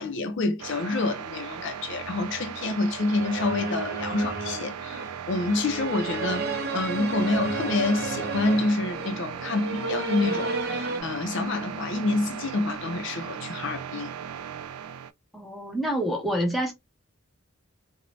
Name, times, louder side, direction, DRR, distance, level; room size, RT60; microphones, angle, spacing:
voice 1, 0.0-14.1, left 2 dB, 55° left, 0.4 m, -27 dB
sound 1, 0.6-15.1, right 8 dB, 85° right, 0.3 m, -37 dB
sound 2, 3.1-11.0, right 3 dB, 50° right, 0.7 m, -32 dB
voice 2, 15.3-16.7, equal, ahead, 0.6 m, -27 dB
2.5 x 2.1 x 3.1 m
head